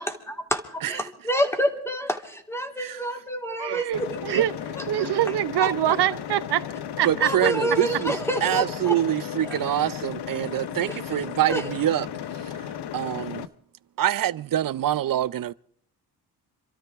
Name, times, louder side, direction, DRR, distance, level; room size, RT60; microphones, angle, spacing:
voice 1, 0.9-4.4 4.7-5.1 5.6-5.7 7.2-8.9 9.5-9.6 10.9-11.0 11.5-11.6, equal, 5° left, 2.6 m, -28 dB
voice 2, 3.6-4.5 4.9-6.6 7.0-7.3, right 13 dB, 80° right, 0.9 m, -24 dB
sound 1, 3.9-13.4, left 9 dB, 85° left, 1.0 m, -35 dB
voice 3, 7.0-12.1 12.9-13.5 14.0-15.5, right 12 dB, 55° right, 0.6 m, -25 dB
28.0 x 13.0 x 3.6 m
cardioid pair, 95°, 39 cm